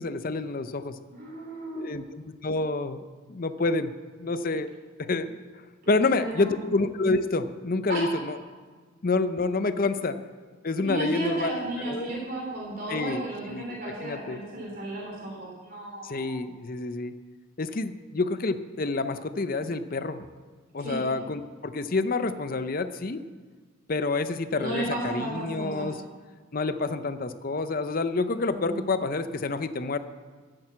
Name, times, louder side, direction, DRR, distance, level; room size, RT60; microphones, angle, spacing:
voice 1, 0.0-1.0 1.7-3.9 4.2-4.7 5.0-5.4 5.9-8.4 9.0-10.2 10.6-11.5 11.9-12.1 12.9-14.4 16.0-17.1 17.6-20.3 20.7-23.2 23.9-26.0 26.5-30.0, left 3 dB, 40° left, 11 dB, 0.6 m, -28 dB
voice 2, 1.1-2.0 5.8-6.5 7.9-8.1 10.8-16.4 20.8-21.0 24.5-25.9 28.5-28.9, right 1 dB, 45° right, -3 dB, 3.3 m, -34 dB
12.5 x 8.9 x 7.7 m, 1.5 s
head